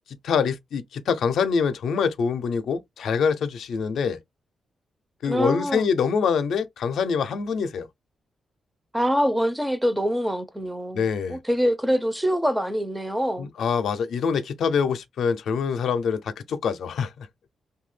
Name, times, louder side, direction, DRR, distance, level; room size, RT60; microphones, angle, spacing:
voice 1, 0.2-4.2 5.2-7.9 10.9-11.4 13.4-17.3, left 6 dB, 80° left, 0.4 m, -25 dB
voice 2, 5.2-5.9 8.9-13.5, equal, 5° right, 0.4 m, -25 dB
2.7 x 2.2 x 3.1 m
cardioid pair, 120°, 0 cm